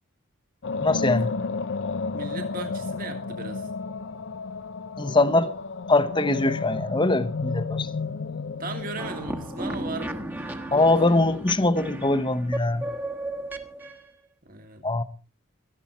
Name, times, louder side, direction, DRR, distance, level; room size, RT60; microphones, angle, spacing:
sound 1, 0.6-10.8, left 4 dB, 60° left, 0.6 m, -32 dB
voice 1, 0.8-1.3 5.0-5.5 5.9-7.9 10.7-12.9 14.8-15.0, left 2 dB, 20° left, 0.9 m, -22 dB
voice 2, 2.1-3.7 8.6-10.8 11.1-11.3 14.4-14.9, right 3 dB, 45° right, 1.7 m, -38 dB
sound 2, 9.0-14.1, right 1 dB, 10° right, 1.2 m, -35 dB
18.0 x 13.0 x 4.3 m
head